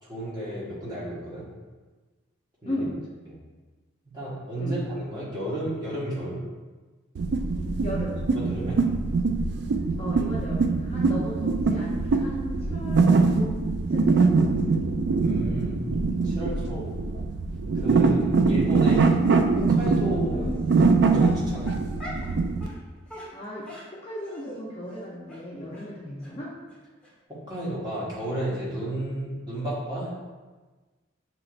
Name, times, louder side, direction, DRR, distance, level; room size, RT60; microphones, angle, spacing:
voice 1, 0.0-1.4 2.6-2.8 4.0-6.4 8.3-8.8 15.2-15.8 16.2-16.9 17.7-19.2 19.5-20.4 20.8-21.7 27.3-30.2, right 1 dB, 20° right, -8 dB, 1.4 m, -32 dB
voice 2, 2.6-2.9 4.6-4.8 7.8-8.2 10.0-13.5 13.9-14.8 20.3-20.6 23.3-26.6, equal, 30° left, -6 dB, 0.6 m, -35 dB
sound 1, 7.1-22.7, right 4 dB, 55° right, 0.3 m, -23 dB
Dog, 18.8-19.2 19.8-19.9 20.7-20.8 21.2-22.3 22.6-22.8 23.1-24.6 24.9-25.0 25.3-25.4 25.7-25.8 26.2-26.3 26.7-26.8 27.0-27.1, left 1 dB, 5° left, 1.2 m, -41 dB
6.2 x 3.0 x 2.5 m, 1.3 s
head